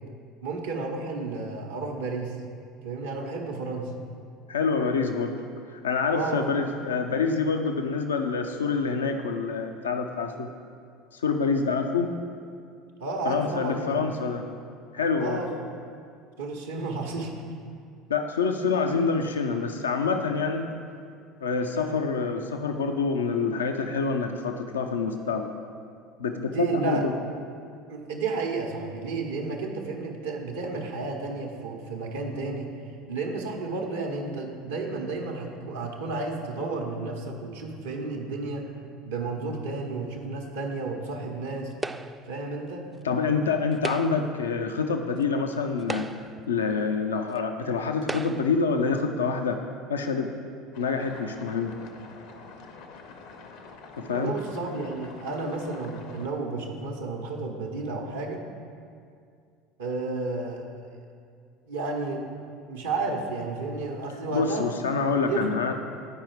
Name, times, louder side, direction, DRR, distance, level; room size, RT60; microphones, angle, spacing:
voice 1, 0.4-2.4 2.8-3.9 6.1-6.4 13.0-14.0 15.2-15.6 16.4-17.3 26.4-27.1 27.9-32.7 33.1-38.7 39.0-41.7 42.3-42.8 54.1-58.4 59.8-60.9 61.7-62.3 62.7-64.7 65.2-65.6, right 3 dB, 85° right, 0 dB, 0.8 m, -32 dB
voice 2, 4.5-10.5 11.1-12.1 13.2-14.5 14.9-15.4 18.1-20.7 21.4-25.5 26.2-27.1 43.0-49.6 49.9-50.3 50.8-51.7 54.0-54.3 64.3-65.7, left 5 dB, 85° left, 5 dB, 0.4 m, -27 dB
sound 1, 41.8-42.3 43.7-44.4 45.2-45.3 45.8-46.5 47.3-47.4 48.0-48.6, right 2 dB, 15° right, 0.3 m, -35 dB
sound 2, 50.7-56.3, left 4 dB, 65° left, 0.7 m, -46 dB
9.3 x 4.8 x 4.5 m, 2.2 s
hypercardioid pair, 70°, 0 cm